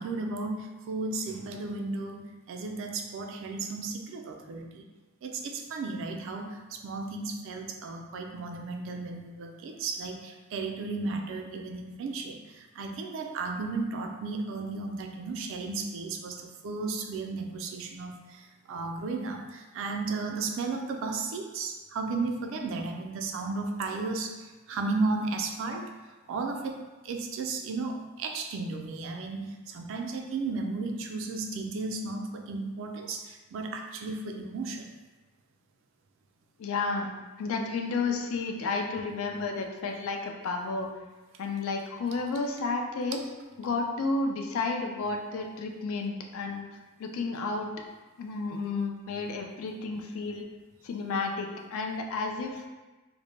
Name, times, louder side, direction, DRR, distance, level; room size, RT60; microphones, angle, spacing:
voice 1, 0.0-4.8 5.2-25.9 26.3-26.8 27.0-34.9, right 3 dB, 65° right, 3 dB, 0.3 m, -34 dB
voice 2, 36.6-40.9 41.4-43.2 43.6-46.6 47.0-47.7 48.2-50.5 50.8-52.7, left 3 dB, 75° left, 2 dB, 0.3 m, -32 dB
2.1 x 2.0 x 3.1 m, 1.2 s
head